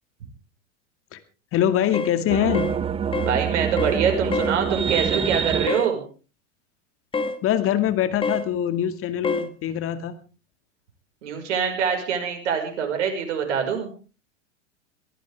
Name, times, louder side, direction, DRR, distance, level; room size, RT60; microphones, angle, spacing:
voice 1, 1.5-2.7 7.4-10.1, left 11 dB, 35° left, 10 dB, 2.2 m, -23 dB
sound 1, 1.9-2.2 2.5-2.8 3.1-3.4 3.8-4.0 4.3-4.6 5.7-5.9 7.1-7.4 8.2-8.5 9.2-9.5, left 3 dB, 15° left, 1.4 m, -27 dB
sound 2, 2.3-5.7, right 7 dB, 15° right, 0.8 m, -25 dB
voice 2, 3.3-6.0 11.2-13.9, right 7 dB, 65° right, 4 dB, 5.5 m, -24 dB
23.0 x 15.0 x 3.6 m, 0.36 s
hypercardioid pair, 95°, 37 cm